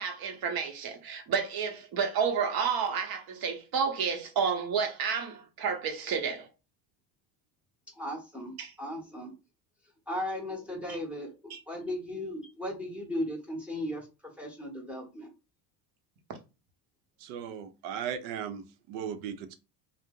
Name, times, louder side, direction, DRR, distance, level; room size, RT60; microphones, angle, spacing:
voice 1, 0.0-6.5 8.6-8.7 11.5-11.6, right 6 dB, 45° right, 0.8 m, -30 dB
voice 2, 8.0-9.3 10.1-15.3, left 1 dB, 5° right, 0.7 m, -37 dB
voice 3, 17.2-19.6, right 8 dB, 85° right, 0.7 m, -37 dB
2.6 x 2.0 x 3.5 m
cardioid pair, 120°, 49 cm